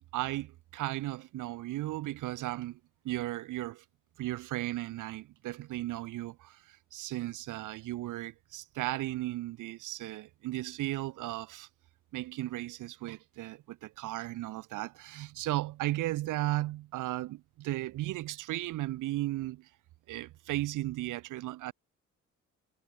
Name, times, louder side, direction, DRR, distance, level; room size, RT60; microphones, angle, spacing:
voice 1, 0.0-3.8 4.2-11.7 12.1-19.7 20.1-21.7, right 16 dB, 90° right, 1.8 m, -35 dB
cardioid pair, 90°, 30 cm